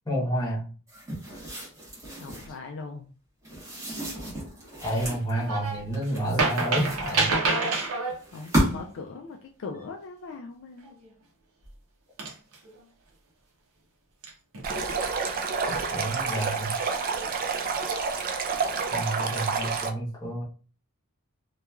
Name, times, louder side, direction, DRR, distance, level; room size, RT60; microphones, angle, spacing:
voice 1, 0.0-0.7 4.8-7.3 15.6-16.7 18.9-20.4, right 1 dB, 20° left, -4 dB, 0.9 m, -30 dB
sound 1, 0.9-2.6 3.4-5.3 5.9-7.5 8.2-9.0, right 1 dB, 15° right, 1.0 m, -32 dB
voice 2, 2.2-3.1 8.3-10.9, left 4 dB, 60° left, 4 dB, 0.3 m, -40 dB
sound 2, 5.3-5.8 6.1-8.2 10.8-11.1 11.6-11.7 12.2-12.8 14.2-14.9 16.1-16.7 17.2-17.4, right 3 dB, 75° right, 0.8 m, -28 dB
Stream, 14.6-19.9, right 5 dB, 40° right, 0.4 m, -29 dB
2.9 x 2.3 x 2.3 m, 0.39 s
head